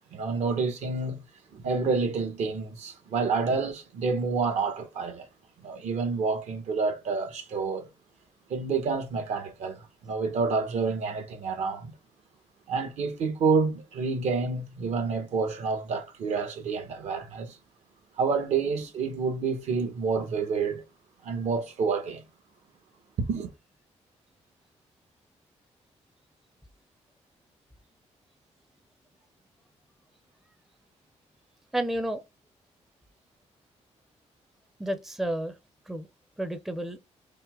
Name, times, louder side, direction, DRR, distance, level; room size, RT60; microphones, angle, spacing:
voice 1, 0.1-1.2 1.5-5.3 5.6-7.9 8.5-11.9 12.7-17.6 18.2-20.8 21.2-22.2 23.2-23.5, right 4 dB, 70° right, 1.3 m, -28 dB
voice 2, 31.7-32.2 34.8-35.6 35.9-36.1 36.4-37.0, right 1 dB, 5° right, 0.5 m, -31 dB
5.5 x 2.1 x 3.5 m
cardioid pair, 155°, 12 cm